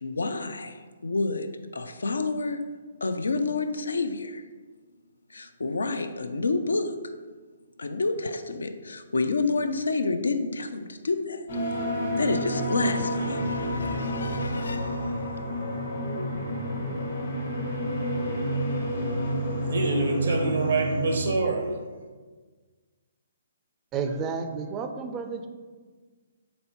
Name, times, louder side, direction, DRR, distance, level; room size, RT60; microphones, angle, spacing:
voice 1, 0.0-2.6 3.0-4.4 5.3-7.0 7.8-11.4 12.2-15.4, left 3 dB, 85° left, 9 dB, 0.4 m, -29 dB
sound 1, 11.5-21.2, equal, 65° left, 1.3 m, -29 dB
voice 2, 19.6-21.7, right 2 dB, 75° right, 3 dB, 0.6 m, -26 dB
voice 3, 23.9-25.5, right 5 dB, 20° right, 6 dB, 0.3 m, -31 dB
4.0 x 3.4 x 3.0 m, 1.4 s
hypercardioid pair, 140°, 0 cm